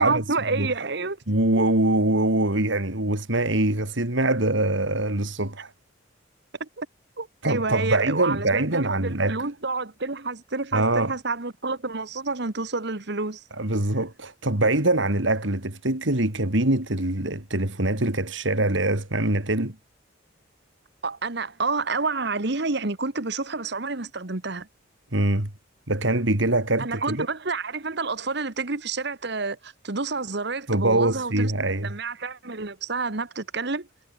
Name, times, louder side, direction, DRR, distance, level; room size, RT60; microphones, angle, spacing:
voice 1, 0.0-1.2 6.6-6.9 7.2-13.4 21.0-24.7 26.8-31.5 31.8-33.9, right 3 dB, 60° right, 1.5 m, -29 dB
voice 2, 1.3-5.7 7.4-9.4 10.7-11.1 13.6-19.8 25.1-25.5 25.9-27.3 30.7-31.9, right 2 dB, 75° right, 3.4 m, -23 dB
head